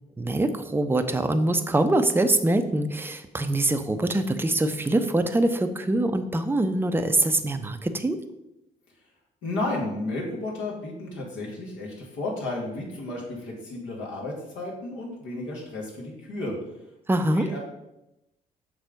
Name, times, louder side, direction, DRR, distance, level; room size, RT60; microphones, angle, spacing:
voice 1, 0.2-8.2 17.1-17.5, right 2 dB, 10° right, 7 dB, 0.7 m, -24 dB
voice 2, 9.4-16.6 17.1-17.6, left 2 dB, 65° left, -2 dB, 2.1 m, -33 dB
6.1 x 4.1 x 5.2 m, 0.88 s
figure-of-eight pair, 45°, 21 cm